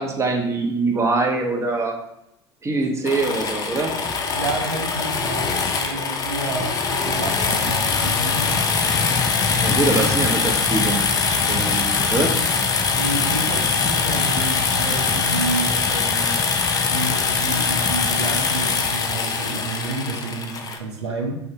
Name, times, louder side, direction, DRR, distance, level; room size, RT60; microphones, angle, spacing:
voice 1, 0.0-2.0 2.6-3.9 9.6-11.0 11.5-12.3, right 3 dB, 20° right, 3 dB, 0.6 m, -23 dB
sound 1, 3.1-20.8, left 5 dB, 25° left, 0.4 m, -22 dB
voice 2, 4.3-8.6 13.0-16.4 16.9-21.4, right 3 dB, 85° right, -1 dB, 0.5 m, -30 dB
3.5 x 2.1 x 2.7 m, 0.81 s
figure-of-eight pair, 70°, 14 cm